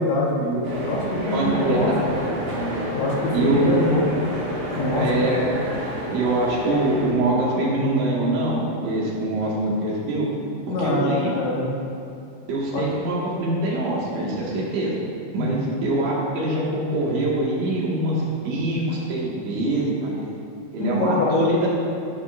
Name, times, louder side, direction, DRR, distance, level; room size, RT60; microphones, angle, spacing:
voice 1, 0.0-1.9 2.9-4.1 4.8-5.1 10.7-11.7 12.7-12.9 15.4-15.7 20.8-21.4, left 2 dB, 70° left, -3 dB, 3.5 m, -24 dB
sound 1, 0.6-7.1, equal, 45° right, 3.6 m, -29 dB
voice 2, 1.1-2.7 3.3-3.8 5.0-5.4 6.1-10.3 10.8-11.4 12.5-14.9 15.3-20.3 20.7-21.6, right 2 dB, 70° right, -5 dB, 4.2 m, -24 dB
16.5 x 11.5 x 2.7 m, 2.7 s
omnidirectional pair, 5.8 m